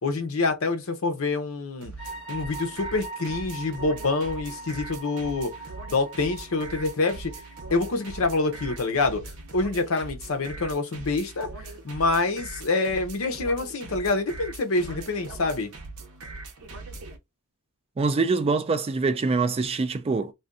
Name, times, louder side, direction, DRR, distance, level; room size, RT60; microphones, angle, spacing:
voice 1, 0.0-1.9 2.3-5.5 5.9-7.3 7.7-9.2 9.5-11.5 11.8-15.7, left 3 dB, 65° left, 0.7 m, -26 dB
sound 1, 1.8-17.2, right 3 dB, 75° right, 0.7 m, -41 dB
sound 2, 2.0-8.8, right 3 dB, ahead, 1.0 m, -41 dB
voice 2, 18.0-20.3, right 4 dB, 25° right, 0.3 m, -24 dB
2.6 x 2.2 x 3.6 m
head